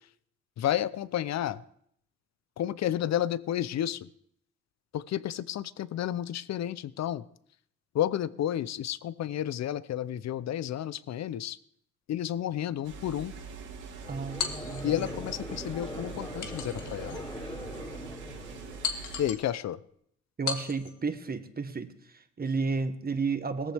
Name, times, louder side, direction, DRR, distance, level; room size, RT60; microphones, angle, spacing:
voice 1, 0.6-1.6 2.6-4.1 4.9-7.2 7.9-11.6 12.1-13.3 14.8-17.2 19.2-19.8, left 11 dB, 60° left, 17 dB, 0.7 m, -31 dB
sound 1, 12.8-19.3, right 5 dB, 80° right, 3.0 m, -43 dB
Conversation / Crowd, 14.0-19.3, left 1 dB, 15° left, 2.9 m, -42 dB
voice 2, 14.1-15.1 20.4-23.7, right 4 dB, 30° right, 9 dB, 1.3 m, -32 dB
sound 2, 14.4-15.1 16.4-17.2 17.8-17.9 18.8-19.5 20.5-21.0, left 7 dB, 80° left, 1.7 m, -36 dB
18.0 x 14.5 x 3.5 m, 0.69 s
cardioid pair, 90°, 30 cm